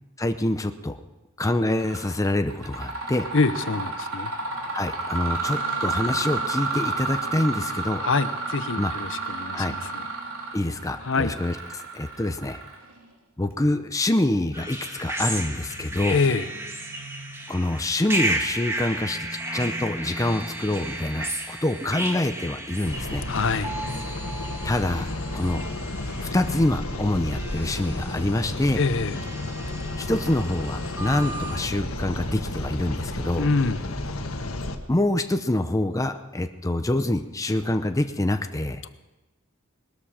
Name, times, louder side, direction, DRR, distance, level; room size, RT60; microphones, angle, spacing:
voice 1, 0.2-1.0 1.4-3.3 4.7-8.0 8.8-8.9 9.5-9.7 10.5-12.6 13.4-16.2 17.5-19.3 19.5-23.2 24.6-25.6 26.2-28.8 30.0-33.5 34.9-38.8, left 1 dB, 15° left, 7 dB, 0.6 m, -26 dB
Mechanisms, 1.8-2.1 2.5-13.0, right 3 dB, 80° right, 3.7 m, -31 dB
voice 2, 3.3-4.3 8.0-10.0 11.0-11.3 16.1-16.5 23.3-23.7 28.8-29.2 33.4-33.9 38.8-38.9, left 4 dB, 65° left, 11 dB, 0.8 m, -25 dB
sound 1, 14.5-31.6, right 1 dB, 15° right, 1.7 m, -34 dB
sound 2, 22.9-34.7, left 2 dB, 90° left, 1.5 m, -32 dB
20.0 x 13.0 x 5.0 m, 1.1 s
head